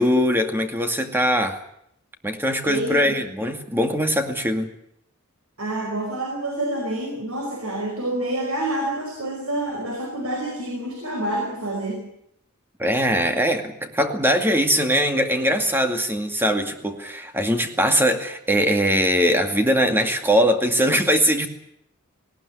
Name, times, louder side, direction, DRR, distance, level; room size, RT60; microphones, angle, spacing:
voice 1, 0.0-1.6 2.2-4.7 12.8-21.5, equal, 10° right, 5 dB, 2.2 m, -21 dB
voice 2, 2.6-3.2 5.6-12.1, right 1 dB, 75° right, 2 dB, 5.1 m, -28 dB
19.0 x 18.0 x 9.8 m, 0.74 s
head